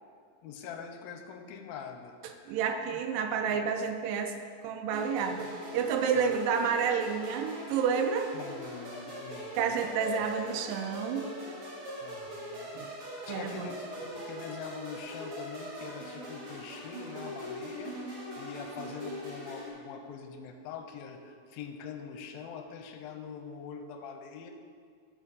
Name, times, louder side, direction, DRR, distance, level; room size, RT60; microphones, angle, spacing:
voice 1, 0.4-2.6 2.9-3.0 3.4-3.6 6.2-6.3 8.3-10.0 12.0-12.7 13.3-24.5, left 6 dB, 80° left, 4 dB, 2.3 m, -44 dB
voice 2, 2.2-4.3 4.6-8.3 9.6-11.3 12.8-12.9 13.3-13.7, right 6 dB, 85° right, 5 dB, 1.9 m, -30 dB
sound 1, 4.9-19.7, right 1 dB, 45° right, 2.0 m, -41 dB
13.5 x 4.9 x 4.1 m, 2.1 s
omnidirectional pair, 4.4 m